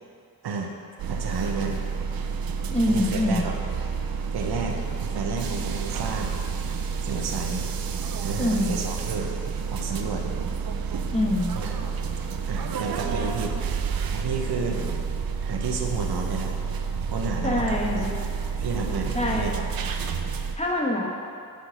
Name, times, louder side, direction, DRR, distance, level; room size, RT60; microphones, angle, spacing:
sound 1, 1.0-20.5, right 5 dB, 65° right, 0.6 m, -29 dB
voice 1, 1.1-1.8 2.9-3.6 4.3-4.8 5.1-6.3 7.0-7.7 8.2-9.3 9.7-10.2 11.5-11.7 12.5-13.8 14.1-14.8 15.4-16.5 17.1-18.1 18.6-19.7, right 4 dB, 90° right, 2 dB, 0.9 m, -31 dB
voice 2, 2.7-3.5 8.4-8.8 11.1-11.6 17.4-18.2 19.1-19.5 20.5-21.1, left 1 dB, 20° left, -2 dB, 1.2 m, -25 dB
5.8 x 5.2 x 6.4 m, 2.4 s
cardioid pair, 75°, 37 cm